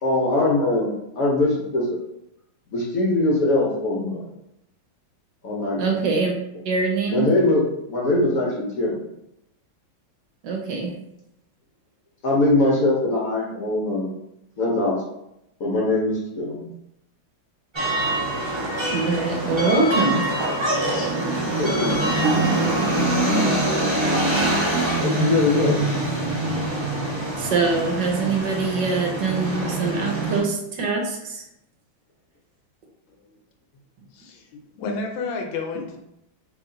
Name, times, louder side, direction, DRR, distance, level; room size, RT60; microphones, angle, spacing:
voice 1, 0.0-2.0 2.7-4.3 5.4-5.9 7.1-7.6 7.9-8.9 12.2-14.1 14.6-15.0 15.6-16.7 21.6-21.9 25.0-25.7, left 2 dB, 60° left, -4 dB, 0.9 m, -22 dB
voice 2, 5.8-6.3 6.6-7.3 10.4-10.9 18.9-20.2 27.4-31.4, right 4 dB, 70° right, 0 dB, 1.3 m, -23 dB
sound 1, 17.7-30.4, right 1 dB, 20° right, 0.7 m, -24 dB
voice 3, 34.1-34.5 34.8-36.0, left 4 dB, 75° left, 2 dB, 1.3 m, -30 dB
3.1 x 3.0 x 3.7 m, 0.83 s
omnidirectional pair, 2.1 m